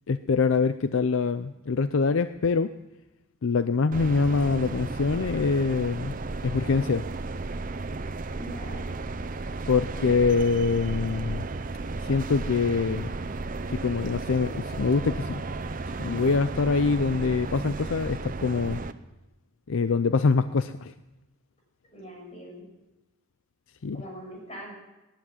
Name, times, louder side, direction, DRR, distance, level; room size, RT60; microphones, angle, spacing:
voice 1, 0.1-2.7 3.4-6.2 6.4-7.1 9.7-11.5 12.0-13.1 13.7-15.4 16.0-18.8 19.7-20.9 23.8-24.0, left 4 dB, 65° left, 12 dB, 0.5 m, -24 dB
sound 1, 3.9-18.9, right 3 dB, 40° right, 0.6 m, -34 dB
voice 2, 8.3-8.8 10.0-10.3 21.9-22.7 23.9-24.7, equal, 30° left, -1 dB, 6.3 m, -42 dB
18.5 x 10.5 x 7.3 m, 1.0 s
head